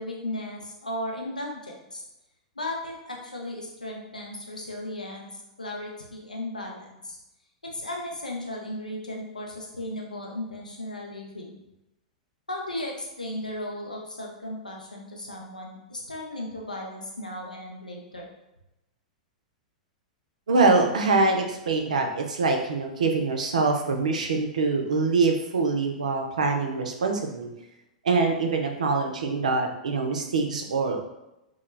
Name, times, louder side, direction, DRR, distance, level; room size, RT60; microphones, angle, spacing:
voice 1, 0.0-2.0 2.6-7.2 7.7-11.5 12.5-18.3, left 1 dB, 85° left, -1 dB, 0.6 m, -36 dB
voice 2, 20.5-27.5 28.0-31.1, right 3 dB, 70° right, 3 dB, 0.4 m, -24 dB
2.2 x 2.1 x 3.0 m, 0.91 s
figure-of-eight pair, 100°, 4 cm